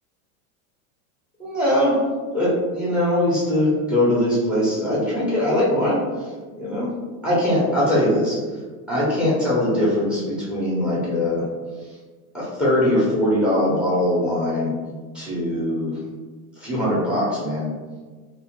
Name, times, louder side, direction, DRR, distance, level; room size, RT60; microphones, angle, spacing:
voice 1, 1.4-2.0 2.3-6.0 6.5-6.9 7.2-8.6 8.9-11.5 12.3-14.7 15.1-16.0 16.6-17.7, left 1 dB, 5° right, -7 dB, 0.4 m, -21 dB
2.4 x 2.1 x 2.8 m, 1.4 s
supercardioid pair, 145°, 43 cm